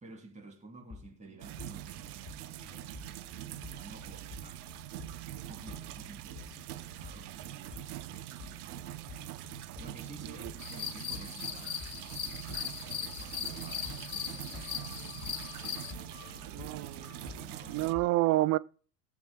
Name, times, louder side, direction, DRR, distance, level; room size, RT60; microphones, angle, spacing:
voice 1, 0.0-4.9 5.2-8.9 9.8-16.7 17.1-17.9, right 3 dB, 15° right, 3.0 m, -53 dB
sound 1, 0.9-18.1, left 5 dB, 30° left, 1.4 m, -51 dB
sound 2, 1.4-17.9, right 13 dB, 65° right, 0.8 m, -44 dB
sound 3, 10.6-15.9, left 7 dB, 85° left, 1.5 m, -39 dB
voice 2, 16.5-17.3 17.7-18.6, right 18 dB, 35° right, 0.5 m, -29 dB
19.5 x 7.3 x 2.3 m
figure-of-eight pair, 75°, 50 cm